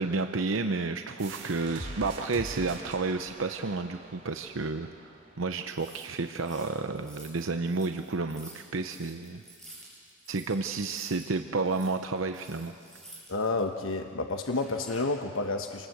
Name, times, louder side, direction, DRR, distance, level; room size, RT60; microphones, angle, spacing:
voice 1, 0.0-9.4 10.3-12.7, right 3 dB, 80° right, 7 dB, 0.8 m, -31 dB
sound 1, 1.2-6.6, right 2 dB, 60° right, 3.4 m, -44 dB
sound 2, 5.7-11.3 11.6-13.6 14.4-15.2, right 1 dB, ahead, 6.1 m, -51 dB
voice 2, 13.3-15.9, left 3 dB, 85° left, 5 dB, 1.1 m, -30 dB
27.5 x 20.0 x 8.0 m, 2.3 s
head